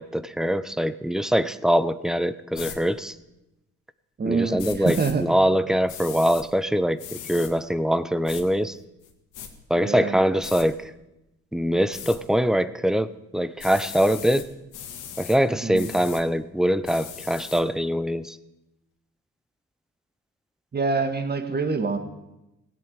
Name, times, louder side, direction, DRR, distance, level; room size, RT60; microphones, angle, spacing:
voice 1, 0.0-3.2 4.2-8.8 9.7-10.9 11.5-14.5 15.2-18.4, equal, ahead, 15 dB, 0.7 m, -23 dB
sound 1, 2.5-2.8 4.6-5.1 5.9-6.4 7.0-7.5 8.3-8.4 9.0-9.5 10.4-10.7 11.9-12.2 13.6-14.5 14.7-15.4 15.7-16.2 16.8-17.6, left 9 dB, 85° left, 2.0 m, -38 dB
voice 2, 4.2-5.2 9.8-10.1 15.6-15.9 20.7-22.0, right 4 dB, 35° right, 8 dB, 1.9 m, -26 dB
17.0 x 8.3 x 9.0 m, 0.94 s
cardioid pair, 90°, 30 cm